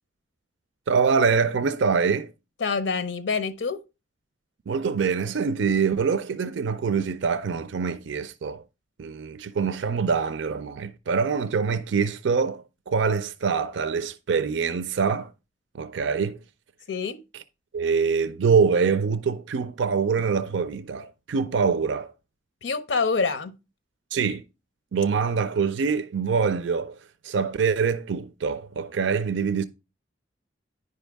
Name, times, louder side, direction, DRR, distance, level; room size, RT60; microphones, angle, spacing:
voice 1, 0.9-2.3 4.7-8.6 9.0-15.3 15.7-16.4 17.7-22.1 24.1-24.4 24.9-27.0 27.2-29.6, right 5 dB, 80° right, 0.4 m, -24 dB
voice 2, 2.6-3.8 16.9-17.2 22.6-23.5, left 4 dB, 85° left, 0.6 m, -26 dB
9.5 x 5.3 x 3.4 m
head